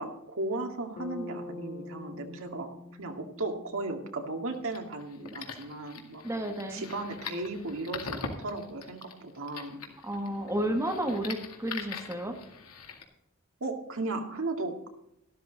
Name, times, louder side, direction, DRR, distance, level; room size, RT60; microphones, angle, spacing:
voice 1, 0.0-6.2 6.7-9.8 13.6-14.9, right 2 dB, 65° right, 4 dB, 2.2 m, -36 dB
Bass guitar, 1.0-5.0, left 2 dB, 35° left, 2.9 m, -45 dB
sound 1, 4.5-13.0, left 5 dB, 80° left, 2.1 m, -43 dB
voice 2, 6.2-6.9 10.0-12.4, right 1 dB, 15° right, 4 dB, 1.6 m, -32 dB
13.0 x 12.5 x 4.0 m, 0.80 s
head